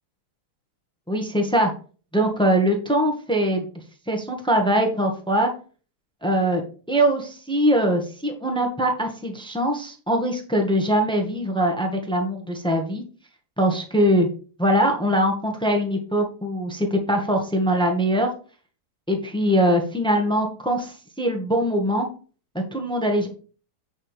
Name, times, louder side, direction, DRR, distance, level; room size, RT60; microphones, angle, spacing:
voice 1, 1.1-1.7 2.1-3.7 4.1-5.5 6.2-13.0 13.6-14.3 14.6-18.3 19.1-22.1 22.7-23.3, equal, 5° left, 3 dB, 1.7 m, -22 dB
8.5 x 7.3 x 3.5 m, 0.38 s
omnidirectional pair, 1.7 m